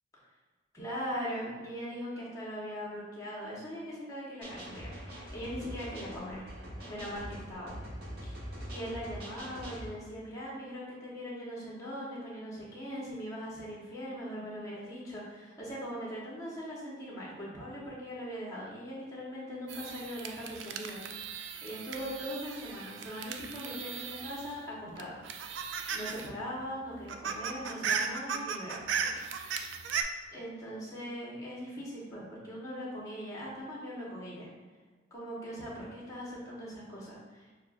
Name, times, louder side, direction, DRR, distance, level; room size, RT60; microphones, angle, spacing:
voice 1, 0.7-6.5 6.8-7.8 8.2-8.4 8.7-21.0 21.6-25.2 25.9-29.1 30.3-34.5 35.1-37.5, equal, 20° left, -6 dB, 1.2 m, -40 dB
sound 1, 4.4-9.9, equal, 60° right, 1.3 m, -43 dB
sound 2, 19.7-24.6 25.0-26.3 26.6-26.7 26.9-30.0, right 6 dB, 75° right, 0.3 m, -37 dB
6.3 x 2.4 x 2.6 m, 1.3 s
head